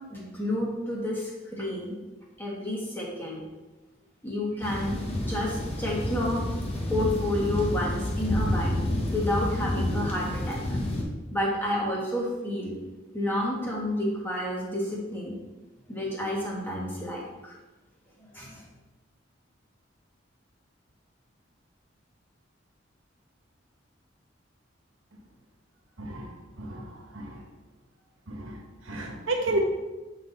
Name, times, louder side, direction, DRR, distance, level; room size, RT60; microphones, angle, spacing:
voice 1, 0.1-1.9 2.4-3.4 4.2-6.4 6.9-8.9 9.1-10.6 11.3-12.7 13.1-15.4 15.9-17.5 18.3-18.6, left 1 dB, 10° left, -4 dB, 1.4 m, -30 dB
sound 1, 4.6-11.0, left 1 dB, 30° left, 1.0 m, -29 dB
voice 2, 26.0-27.4 28.3-29.6, right 2 dB, 90° right, 1 dB, 1.2 m, -32 dB
7.9 x 4.2 x 3.9 m, 1.1 s
head